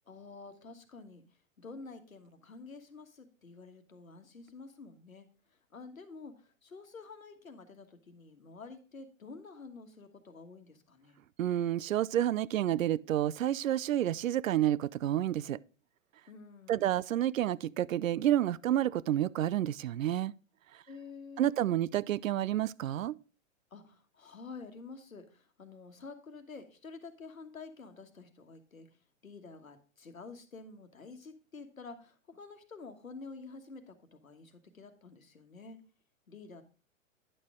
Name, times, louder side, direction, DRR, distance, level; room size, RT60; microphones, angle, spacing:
voice 1, 0.1-1.2 1.6-5.3 5.7-11.2 16.3-17.0 20.9-21.7 23.7-28.9 29.2-35.8 36.3-36.6, left 4 dB, 90° left, 1.4 m, -49 dB
voice 2, 11.4-15.6 16.7-20.3 21.4-23.1, right 12 dB, 75° right, 0.5 m, -29 dB
9.9 x 6.4 x 3.6 m
figure-of-eight pair, 115°, 40 cm